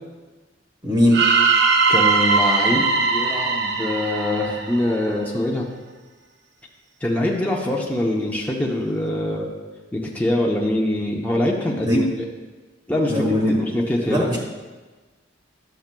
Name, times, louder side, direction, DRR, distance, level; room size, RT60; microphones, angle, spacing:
voice 1, 0.8-1.2 11.8-12.0 13.1-13.5 14.1-14.4, left 1 dB, 20° right, -2 dB, 1.1 m, -19 dB
sound 1, 1.1-5.2, right 4 dB, 60° right, 0.6 m, -20 dB
voice 2, 1.9-5.7 7.0-9.5 9.9-12.1 12.9-13.2 13.7-14.3, left 1 dB, 10° left, -2 dB, 0.7 m, -23 dB
11.5 x 7.0 x 2.2 m, 1.3 s
head